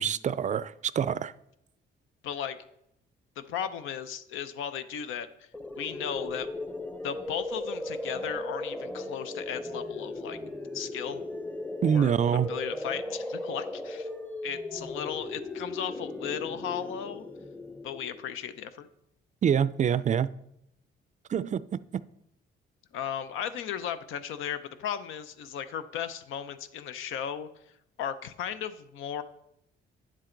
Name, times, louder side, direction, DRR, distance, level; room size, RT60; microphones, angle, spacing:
voice 1, 0.0-1.3 11.8-12.5 19.4-20.3 21.3-21.6, right 8 dB, 40° right, 0.4 m, -25 dB
voice 2, 2.2-2.6 3.4-5.3 5.8-6.5 7.0-10.4 10.7-11.2 11.8-14.1 14.4-17.3 17.8-18.9 22.9-27.5 28.0-29.2, left 8 dB, 85° left, 0.7 m, -36 dB
sound 1, 5.5-18.3, left 2 dB, 10° left, 0.7 m, -37 dB
9.7 x 7.5 x 3.9 m
cardioid pair, 90°, 20 cm